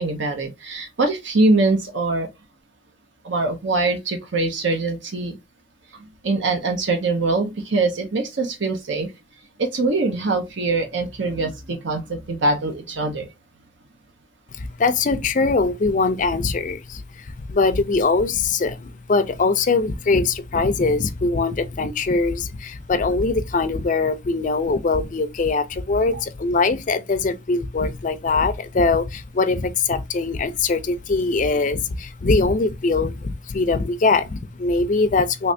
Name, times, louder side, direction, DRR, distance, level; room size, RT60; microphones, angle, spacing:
voice 1, 0.0-2.3 3.2-5.4 6.2-9.1 9.6-13.3 26.1-26.2, right 3 dB, 70° right, 0.7 m, -23 dB
voice 2, 14.5-35.5, left 3 dB, 40° left, 0.4 m, -22 dB
3.2 x 3.2 x 2.5 m
head